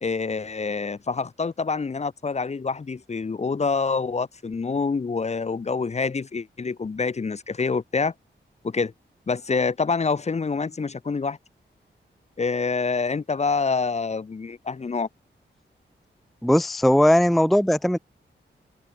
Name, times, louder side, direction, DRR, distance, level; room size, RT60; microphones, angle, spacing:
voice 1, 0.0-8.1 8.6-8.9 9.3-11.4 12.4-15.1, left 4 dB, 35° left, 0.8 m, -26 dB
voice 2, 16.4-18.0, equal, ahead, 0.5 m, -18 dB
wide cardioid pair, 105°, 20 cm